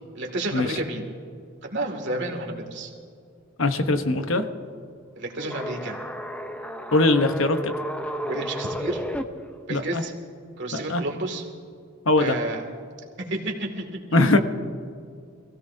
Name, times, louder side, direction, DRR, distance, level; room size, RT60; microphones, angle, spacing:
voice 1, 0.1-1.0 1.6-2.9 5.2-6.0 8.2-9.0 9.7-10.1 10.6-11.5 12.2-12.6 13.3-14.0, right 2 dB, 60° right, 2 dB, 2.4 m, -30 dB
voice 2, 3.6-4.5 6.9-7.7 9.7-10.0 10.7-11.0 12.1-12.4 14.1-14.4, left 2 dB, 75° left, 7 dB, 1.1 m, -21 dB
sound 1, 5.4-9.2, equal, 5° left, 0.7 m, -32 dB
26.0 x 17.0 x 2.8 m, 2.3 s
head